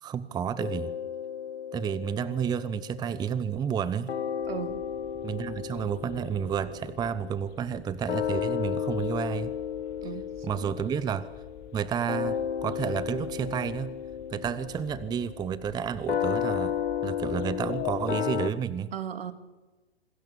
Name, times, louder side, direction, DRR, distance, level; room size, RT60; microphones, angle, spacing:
voice 1, 0.0-0.9 1.7-4.1 5.2-9.5 10.4-11.3 11.7-13.9 14.3-16.8 17.0-18.9, right 8 dB, 15° right, 16 dB, 0.8 m, -31 dB
sound 1, 0.6-3.8 4.1-18.5, left 9 dB, 75° left, 1.6 m, -34 dB
sound 2, 4.4-18.2, left 10 dB, 30° left, 3.0 m, -47 dB
voice 2, 4.5-4.8 10.0-10.7 18.9-19.3, right 8 dB, 65° right, 10 dB, 2.4 m, -37 dB
27.5 x 20.5 x 7.3 m, 1.2 s
hypercardioid pair, 115°, 32 cm